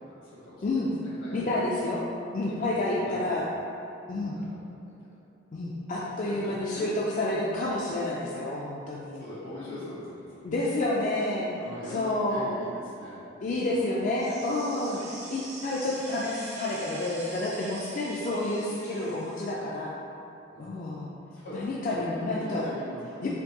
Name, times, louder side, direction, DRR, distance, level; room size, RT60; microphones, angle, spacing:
voice 1, 0.1-1.5 1.8-1.9 2.5-3.5 4.1-4.6 6.1-7.2 9.1-10.7 11.5-13.9 14.2-14.4 20.5-20.8 21.3-23.3, left 1 dB, 80° left, -8 dB, 1.3 m, -43 dB
voice 2, 1.3-2.0 2.3-3.5 4.1-4.3 5.5-6.9 7.2-9.2 10.4-11.5 11.9-12.5 13.4-19.9 20.6-21.1 21.5-22.7 23.2-23.3, left 2 dB, 40° left, -5 dB, 0.3 m, -29 dB
sound 1, 14.2-19.4, right 2 dB, 35° right, 0.6 m, -44 dB
4.4 x 3.1 x 2.8 m, 2.7 s
head